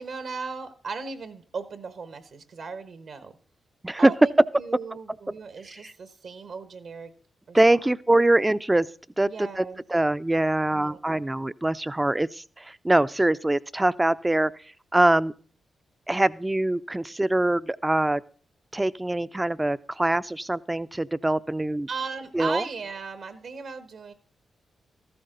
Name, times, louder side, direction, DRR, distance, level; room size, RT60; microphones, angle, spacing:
voice 1, 0.0-3.4 4.0-7.1 7.5-7.8 9.3-9.8 10.7-11.0 21.9-24.1, right 5 dB, 65° right, 12 dB, 1.2 m, -37 dB
voice 2, 7.5-8.9 9.2-14.5 14.9-15.3 16.1-18.2 18.7-21.9 22.3-22.6, right 1 dB, 20° right, 15 dB, 0.5 m, -23 dB
14.0 x 12.0 x 3.9 m, 0.42 s
hypercardioid pair, 40°, 0 cm